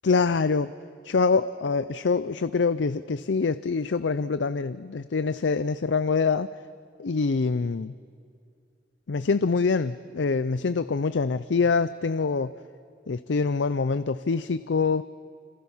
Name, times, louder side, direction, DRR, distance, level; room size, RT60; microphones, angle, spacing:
voice 1, 0.0-0.7 1.1-6.5 7.0-7.9 9.1-12.5 13.1-15.0, left 4 dB, 80° left, 13 dB, 0.5 m, -25 dB
29.5 x 26.5 x 5.7 m, 2.4 s
head